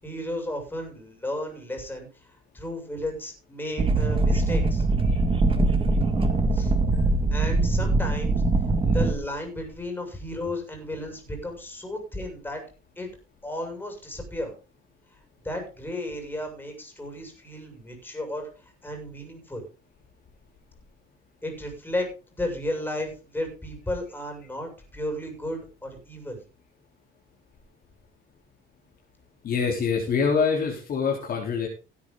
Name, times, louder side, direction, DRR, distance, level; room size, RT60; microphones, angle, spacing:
voice 1, 0.0-4.8 6.5-6.7 7.3-8.4 8.8-12.6 13.0-13.1 13.4-14.5 15.1-15.2 15.4-19.7 21.4-26.4, left 1 dB, 10° left, 2 dB, 6.8 m, -34 dB
sound 1, 3.8-9.1, right 2 dB, 25° right, 2.0 m, -22 dB
voice 2, 29.4-31.7, left 5 dB, 45° left, 0 dB, 3.8 m, -25 dB
17.0 x 9.7 x 3.9 m, 0.33 s
cardioid pair, 140°, 21 cm